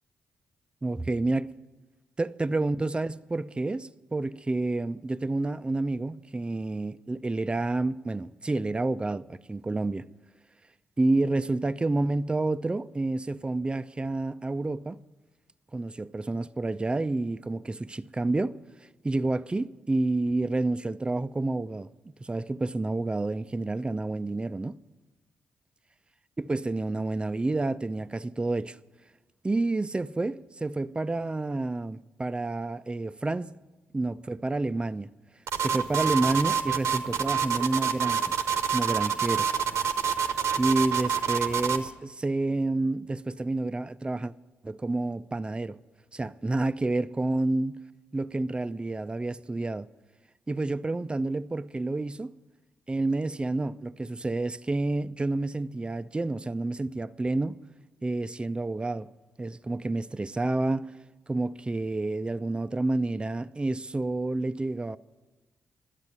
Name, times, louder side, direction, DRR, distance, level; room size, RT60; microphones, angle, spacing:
voice 1, 0.8-1.5 2.2-10.1 11.0-15.0 15.7-18.6 19.0-21.9 22.2-24.8 26.4-28.8 29.4-33.5 33.9-35.1 35.6-38.4 38.7-39.5 40.6-44.3 44.6-45.8 46.1-47.8 48.1-49.9 50.5-52.3 52.9-57.6 58.0-59.1 59.4-60.9 61.3-65.0, right 2 dB, 20° right, 0.4 m, -29 dB
sound 1, 35.5-41.9, right 7 dB, 75° right, 0.9 m, -27 dB
12.0 x 8.2 x 9.5 m
supercardioid pair, 50°, 5 cm